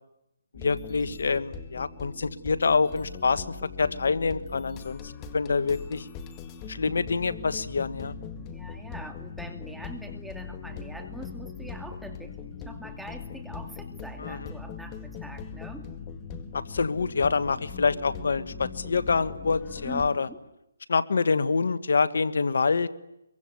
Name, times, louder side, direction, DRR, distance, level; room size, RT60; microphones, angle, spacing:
voice 1, 0.5-6.1 6.7-8.1 14.2-14.5 16.5-20.3 20.9-22.9, left 4 dB, 70° left, 13 dB, 1.4 m, -26 dB
sound 1, 0.5-20.1, left 5 dB, 20° left, 1.9 m, -40 dB
voice 2, 8.5-15.9 19.8-20.4, right 1 dB, ahead, 4 dB, 2.6 m, -44 dB
25.0 x 23.5 x 9.3 m, 0.85 s
hypercardioid pair, 160°, 0 cm